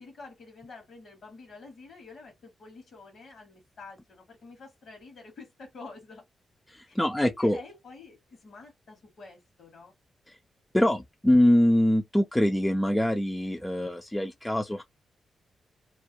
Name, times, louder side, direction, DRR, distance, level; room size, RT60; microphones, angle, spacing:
voice 1, 0.0-6.2 6.9-7.0 7.2-9.9, left 4 dB, 65° left, 1.0 m, -48 dB
voice 2, 6.7-7.6 10.3-10.4 10.7-14.8, left 1 dB, 10° left, 0.3 m, -24 dB
2.2 x 2.2 x 2.7 m
wide cardioid pair, 125°, 0 cm